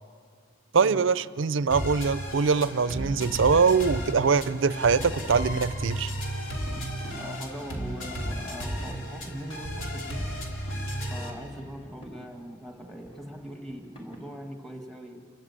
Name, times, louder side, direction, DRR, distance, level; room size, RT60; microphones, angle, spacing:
voice 1, 0.7-6.1, right 5 dB, 65° right, 16 dB, 0.5 m, -23 dB
sound 1, 1.7-11.3, equal, 65° left, 2.6 m, -34 dB
sound 2, 2.5-14.4, equal, 25° left, 4.1 m, -49 dB
voice 2, 7.2-10.3 11.1-15.2, equal, ahead, 3 dB, 1.6 m, -41 dB
29.5 x 12.5 x 8.5 m, 2.2 s
head